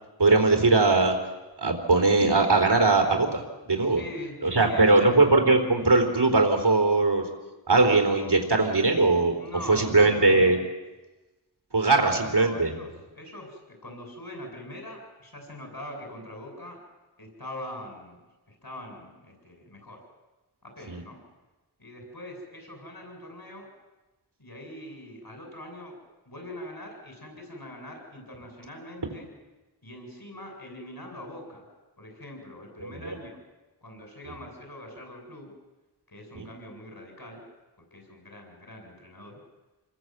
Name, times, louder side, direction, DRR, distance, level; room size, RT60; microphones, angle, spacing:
voice 1, 0.2-1.2 1.6-4.0 4.4-7.3 7.7-9.3 9.6-10.6 11.7-12.7 20.9-21.0 32.8-33.2 34.3-34.4 36.4-36.5, right 3 dB, 80° right, 4 dB, 3.6 m, -21 dB
voice 2, 3.9-5.1 9.4-10.2 11.9-12.9 13.1-16.8 17.2-18.2 18.5-20.0 20.6-21.2 21.8-23.7 24.4-26.0 26.3-29.3 29.8-31.7 32.0-33.4 33.8-35.5 36.1-37.4 37.9-39.4, left 1 dB, 65° left, 2 dB, 8.0 m, -42 dB
28.0 x 22.0 x 8.0 m, 1.2 s
wide cardioid pair, 50°, 39 cm